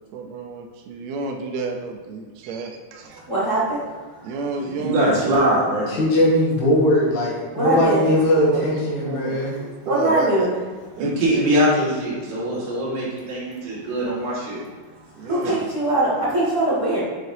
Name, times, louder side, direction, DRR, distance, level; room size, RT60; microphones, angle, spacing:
voice 1, 0.1-3.2 4.2-5.0 5.2-5.6 7.7-10.5 11.0-11.5 15.2-15.6, right 4 dB, 75° right, 2 dB, 1.7 m, -31 dB
voice 2, 3.3-3.9 7.5-8.0 9.8-10.5 15.2-17.0, right 1 dB, 15° right, -8 dB, 1.0 m, -21 dB
voice 3, 4.8-5.9 11.0-14.6 15.4-15.5, right 1 dB, 45° right, -7 dB, 2.3 m, -22 dB
voice 4, 5.9-9.5, left 1 dB, 75° left, -4 dB, 2.8 m, -19 dB
6.9 x 6.0 x 2.7 m, 1.4 s
omnidirectional pair, 3.4 m